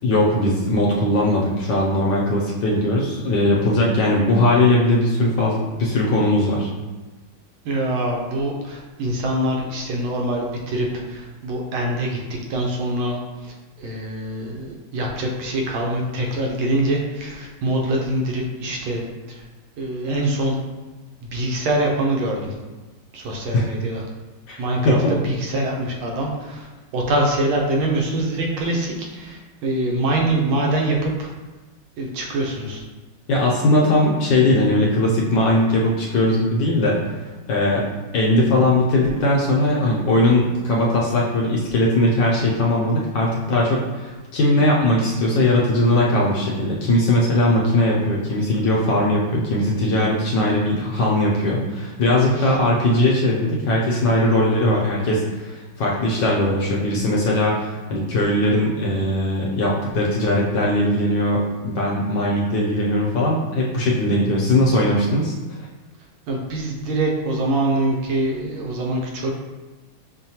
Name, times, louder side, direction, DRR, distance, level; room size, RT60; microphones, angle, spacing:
voice 1, 0.0-6.7 23.5-23.7 24.5-24.6 24.8-25.1 33.3-37.1 37.5-37.9 38.1-65.3, left 1 dB, 70° left, -3 dB, 1.1 m, -19 dB
voice 2, 7.6-19.0 19.3-19.4 19.8-20.6 21.2-22.5 23.1-24.0 24.6-26.7 26.9-31.3 32.0-32.8 52.3-52.5 66.3-69.3, right 1 dB, 80° right, -1 dB, 1.5 m, -24 dB
6.3 x 2.2 x 2.8 m, 1.2 s
omnidirectional pair, 2.3 m